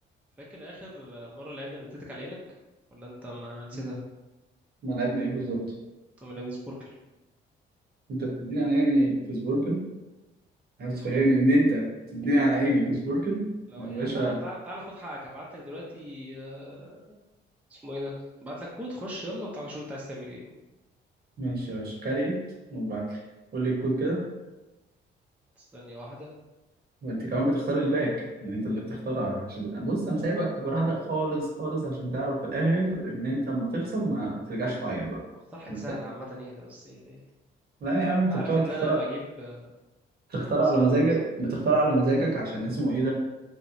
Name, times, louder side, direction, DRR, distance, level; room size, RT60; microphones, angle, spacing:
voice 1, 0.5-2.4 2.9-4.0 6.2-6.9 10.9-11.2 13.7-17.2 17.7-18.1 18.4-20.5 25.6-26.3 35.3-37.2 38.3-39.7 40.4-40.7, equal, 5° right, -4 dB, 0.4 m, -39 dB
voice 2, 4.8-5.6 8.1-9.8 10.8-14.4 21.4-22.4 22.7-23.2 23.5-24.2 27.0-35.2 35.7-36.0 37.8-39.0 40.3-43.1, right 2 dB, 50° right, -2 dB, 0.8 m, -26 dB
2.9 x 2.0 x 2.5 m, 1.0 s
cardioid pair, 90°, 20 cm